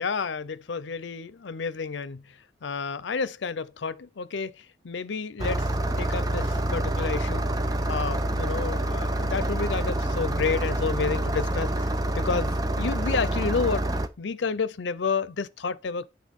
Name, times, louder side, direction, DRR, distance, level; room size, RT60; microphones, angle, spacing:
voice 1, 0.0-2.2 2.6-4.5 4.8-5.7 6.0-7.4 7.9-11.7 12.1-13.9 14.2-16.1, left 5 dB, 90° left, 0.6 m, -30 dB
Engine starting, 5.4-14.1, right 1 dB, 20° right, 0.6 m, -27 dB
8.5 x 3.8 x 5.3 m
head